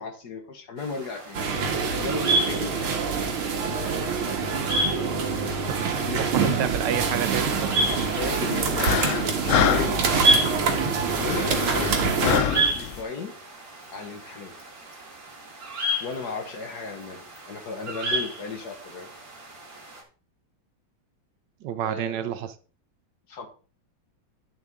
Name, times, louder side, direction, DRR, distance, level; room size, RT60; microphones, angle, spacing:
voice 1, 0.0-1.4 1.9-3.1 6.0-6.2 7.9-10.0 11.2-13.3 13.9-14.5 16.0-19.1 21.8-22.5 23.3-23.5, left 4 dB, 50° left, 1.8 m, -35 dB
sound 1, 0.8-20.0, right 1 dB, 45° right, 2.7 m, -31 dB
sound 2, 1.3-12.4, right 5 dB, 85° right, 2.4 m, -26 dB
voice 2, 5.7-7.9 11.9-12.0 21.6-22.5, right 10 dB, 70° right, 1.1 m, -30 dB
sound 3, 7.8-13.0, left 8 dB, 80° left, 0.7 m, -28 dB
10.5 x 6.9 x 3.7 m
omnidirectional pair, 2.3 m